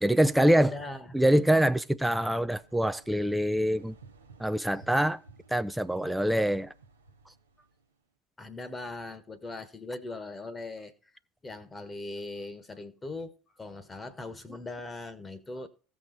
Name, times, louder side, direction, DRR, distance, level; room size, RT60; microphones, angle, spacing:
voice 1, 0.0-0.7 1.1-3.9 4.4-5.2 5.5-6.7, right 1 dB, 5° right, 0.5 m, -24 dB
voice 2, 0.6-1.1 5.9-6.4 8.4-10.9 11.4-15.7, left 2 dB, 20° left, 1.3 m, -40 dB
sound 1, 2.5-7.9, right 3 dB, 90° right, 1.0 m, -56 dB
15.5 x 6.2 x 4.0 m
hypercardioid pair, 75°, 0 cm